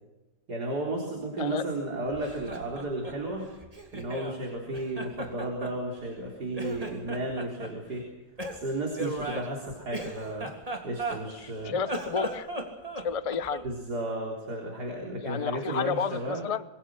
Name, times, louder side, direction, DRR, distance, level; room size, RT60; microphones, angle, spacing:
voice 1, 0.5-3.5 3.9-8.1 8.5-10.5 10.8-11.8 13.6-16.4, right 1 dB, 60° right, -1 dB, 4.4 m, -33 dB
Laughter, 2.1-4.4 4.7-6.3 6.5-7.7 8.4-11.5 11.8-13.7, right 2 dB, 20° right, 3.3 m, -37 dB
voice 2, 11.6-12.5 13.0-13.7 15.2-16.6, left 6 dB, 65° left, 15 dB, 0.3 m, -31 dB
26.5 x 22.5 x 6.3 m, 1.1 s
omnidirectional pair, 1.9 m